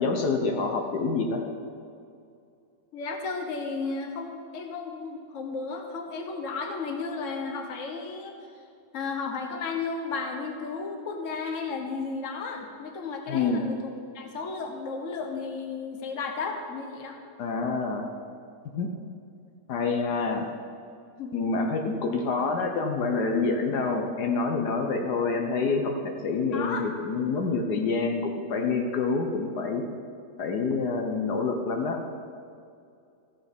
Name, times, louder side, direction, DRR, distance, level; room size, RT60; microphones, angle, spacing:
voice 1, 0.0-1.4 13.3-13.6 17.4-18.0 18.7-18.9 19.7-20.5 21.3-29.8 30.4-32.0, left 4 dB, 75° left, 3 dB, 1.5 m, -27 dB
voice 2, 2.9-8.4 8.9-17.2 21.2-21.4 26.5-26.8, left 4 dB, 50° left, 3 dB, 1.3 m, -33 dB
14.5 x 7.4 x 5.2 m, 2.4 s
omnidirectional pair, 1.8 m